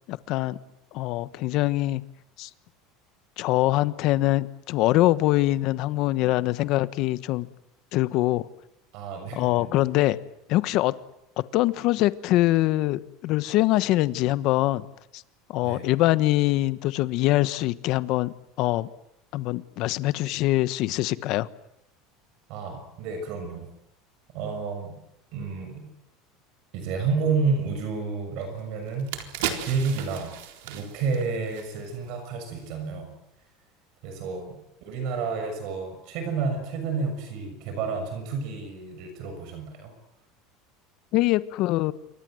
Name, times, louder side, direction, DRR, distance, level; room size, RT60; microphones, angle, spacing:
voice 1, 0.1-0.6 0.9-2.0 2.4-2.5 3.4-7.5 7.9-8.5 9.4-10.2 10.5-10.9 11.4-14.9 15.1-15.2 15.5-18.9 19.3-21.5 41.1-41.9, left 16 dB, 45° left, 15 dB, 1.2 m, -23 dB
voice 2, 8.9-9.9 15.6-15.9 22.5-23.7 24.3-25.0 25.3-25.8 26.7-29.1 29.4-30.3 30.6-33.1 34.0-39.9, right 4 dB, 55° right, 7 dB, 6.6 m, -30 dB
sound 1, 28.4-28.5 28.9-32.2 32.5-32.7, right 10 dB, 75° right, 4.0 m, -35 dB
28.0 x 23.5 x 7.9 m, 0.81 s
cardioid pair, 165°, 0 cm